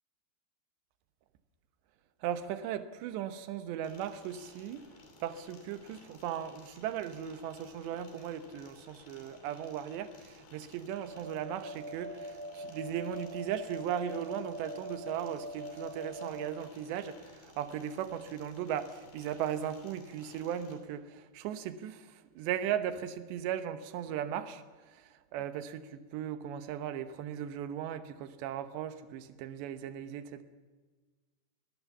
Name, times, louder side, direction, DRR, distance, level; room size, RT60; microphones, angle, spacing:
voice 1, 2.2-4.9 5.2-30.4, right 9 dB, 85° right, 11 dB, 3.3 m, -37 dB
sound 1, 3.8-20.8, left 2 dB, 60° left, 4.8 m, -57 dB
sound 2, 11.1-16.5, equal, 60° right, 2.2 m, -43 dB
21.0 x 18.5 x 7.2 m, 1.4 s
omnidirectional pair, 5.0 m